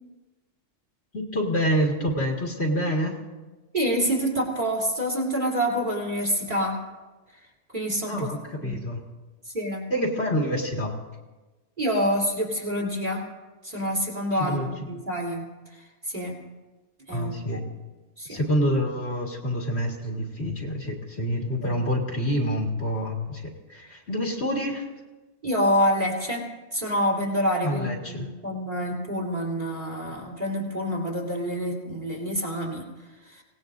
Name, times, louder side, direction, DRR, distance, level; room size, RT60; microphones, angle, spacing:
voice 1, 1.1-3.2 8.1-9.0 9.9-10.9 14.4-14.7 17.1-17.6 18.3-24.9 27.6-28.3, equal, 55° left, 0 dB, 2.2 m, -27 dB
voice 2, 3.7-6.8 7.3-7.5 7.7-8.3 8.6-8.8 9.5-9.8 11.8-13.3 13.6-16.4 17.1-17.6 18.2-18.4 21.6-21.9 25.4-32.9 33.2-33.4, equal, 40° right, -1 dB, 3.6 m, -27 dB
25.0 x 18.0 x 2.6 m, 1.2 s
omnidirectional pair, 1.3 m